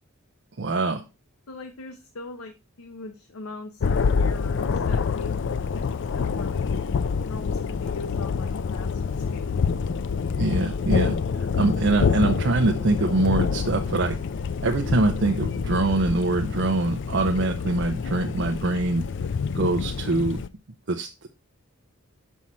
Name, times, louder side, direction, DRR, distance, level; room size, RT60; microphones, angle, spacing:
voice 1, 0.6-1.0 10.4-14.2 14.6-19.0 19.5-20.4 20.9-21.3, right 2 dB, 55° right, 4 dB, 0.7 m, -24 dB
voice 2, 1.5-5.9 6.1-6.6 7.3-9.6, left 3 dB, 75° left, 6 dB, 0.8 m, -41 dB
Thunder, 3.8-20.5, left 5 dB, 55° left, 0.4 m, -27 dB
6.2 x 5.6 x 4.2 m, 0.27 s
head